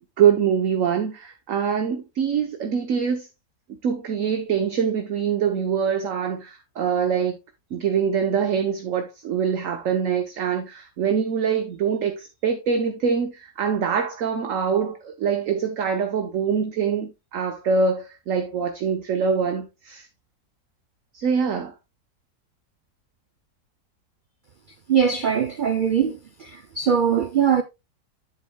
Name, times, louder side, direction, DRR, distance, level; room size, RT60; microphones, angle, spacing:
voice 1, 0.2-3.3 3.8-7.4 7.7-20.1 21.1-21.7, right 6 dB, 60° right, 1.2 m, -24 dB
voice 2, 24.9-26.5 26.8-27.6, right 7 dB, 85° right, 0.4 m, -21 dB
10.0 x 8.2 x 2.2 m
omnidirectional pair, 1.7 m